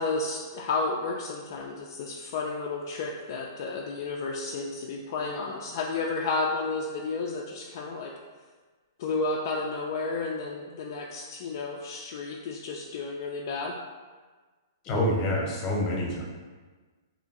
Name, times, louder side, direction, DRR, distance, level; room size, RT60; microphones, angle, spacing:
voice 1, 0.0-8.1 9.0-13.8, left 3 dB, 55° left, -1 dB, 0.3 m, -32 dB
voice 2, 14.8-16.2, left 1 dB, 25° left, -2 dB, 0.8 m, -27 dB
2.7 x 2.5 x 4.0 m, 1.4 s
hypercardioid pair, 145°, 2 cm